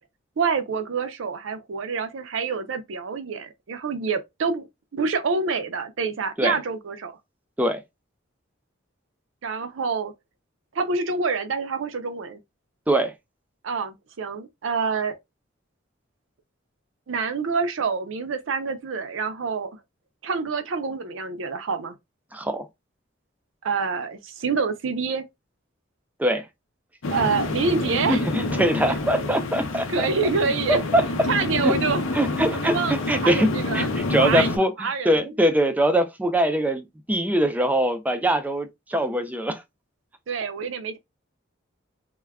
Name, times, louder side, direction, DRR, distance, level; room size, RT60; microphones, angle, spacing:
voice 1, 0.4-7.2 9.4-10.1 10.7-12.4 13.6-15.2 17.1-19.7 20.2-21.9 23.6-25.2 27.1-28.3 28.9-29.0 29.9-30.8 31.3-32.0 32.5-33.9 34.2-34.5 34.8-35.2 40.3-41.0, right 4 dB, 70° right, 0.5 m, -27 dB
voice 2, 22.3-22.7 26.2-26.4 28.1-30.1 30.7-31.0 31.6-31.7 32.1-33.5 33.7-39.6, right 1 dB, 10° right, 0.3 m, -23 dB
sound 1, 27.0-34.6, left 2 dB, 80° left, 0.6 m, -28 dB
2.2 x 2.1 x 3.4 m
head